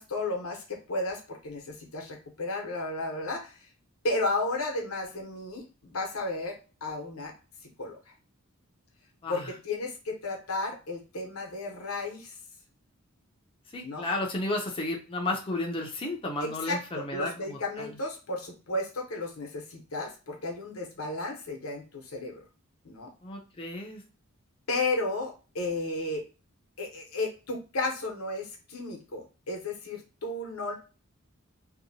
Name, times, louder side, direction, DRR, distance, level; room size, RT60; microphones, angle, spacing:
voice 1, 0.0-3.7 4.0-7.3 7.8-8.0 9.3-12.3 13.8-14.1 16.4-22.4 22.8-23.1 24.7-26.2 26.8-30.7, left 2 dB, 90° left, 1 dB, 0.8 m, -33 dB
voice 2, 13.7-17.9 23.2-24.0, left 2 dB, 25° left, 0 dB, 0.5 m, -33 dB
2.7 x 2.1 x 2.6 m, 0.33 s
head